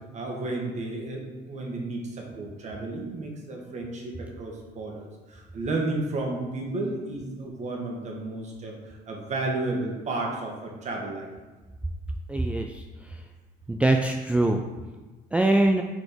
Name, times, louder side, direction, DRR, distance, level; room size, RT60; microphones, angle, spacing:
voice 1, 0.1-11.3, right 2 dB, 45° right, 0 dB, 1.4 m, -32 dB
voice 2, 12.3-12.8 13.7-14.6 15.3-15.8, right 2 dB, 5° right, 2 dB, 0.3 m, -22 dB
4.5 x 4.3 x 5.1 m, 1.2 s
cardioid pair, 110°, 17 cm